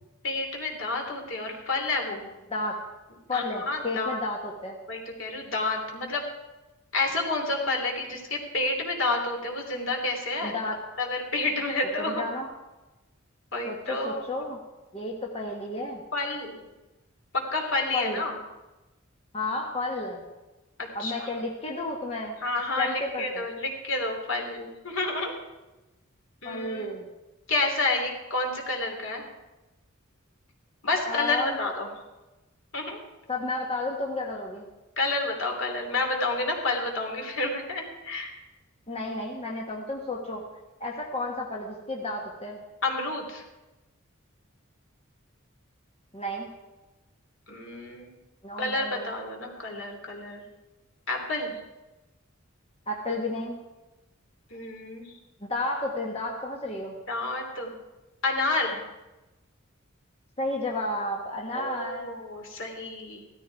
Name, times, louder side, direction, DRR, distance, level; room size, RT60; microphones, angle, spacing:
voice 1, 0.2-2.3 3.3-4.2 4.9-6.2 6.9-10.6 11.0-12.2 13.5-14.5 16.1-16.7 17.3-18.4 20.8-21.3 22.4-25.3 26.4-26.9 27.5-29.3 30.8-31.9 32.7-33.0 35.0-38.3 42.8-43.4 47.5-48.1 48.6-50.4 51.1-51.6 54.5-55.1 57.1-57.7 58.2-58.8 61.5-63.2, left 2 dB, 65° left, 1 dB, 3.1 m, -29 dB
voice 2, 3.3-4.8 10.4-10.8 12.0-12.5 13.6-14.6 14.9-16.0 17.9-18.2 19.3-20.2 20.9-22.3 22.8-23.4 26.4-27.1 31.1-31.6 33.3-34.7 38.9-40.4 40.8-42.6 46.1-46.5 48.4-49.1 52.9-53.6 55.4-56.9 60.4-62.2, left 2 dB, 30° left, -1 dB, 1.5 m, -32 dB
16.0 x 13.5 x 4.7 m, 1.1 s
head